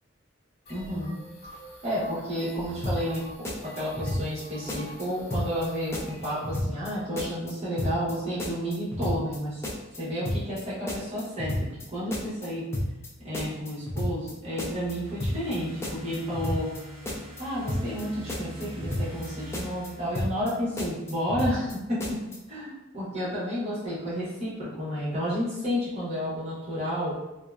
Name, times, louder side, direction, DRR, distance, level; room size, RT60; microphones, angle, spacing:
sound 1, 0.7-6.5, equal, 60° left, 0.6 m, -46 dB
voice 1, 0.7-1.2 1.8-9.6 10.0-12.7 13.2-16.7 17.4-22.0 22.5-27.2, equal, 35° right, -9 dB, 1.1 m, -31 dB
sound 2, 2.8-3.2 3.4-4.4 4.7-5.0 5.3-5.7 5.9-6.9 7.2-7.5 7.8-8.1 8.4-9.4 9.6-10.0 10.3-10.6 10.9-11.8 12.1-12.5 12.7-13.1 13.3-14.3 14.6-14.9 15.2-15.6 15.8-16.8 17.1-17.4 17.7-18.0 18.3-19.3 19.5-19.9 20.2-20.5 20.8-21.7 22.0-22.4, left 1 dB, 15° left, 0.4 m, -31 dB
sound 3, 14.7-20.8, equal, 80° right, 0.6 m, -43 dB
2.7 x 2.1 x 2.3 m, 0.94 s
head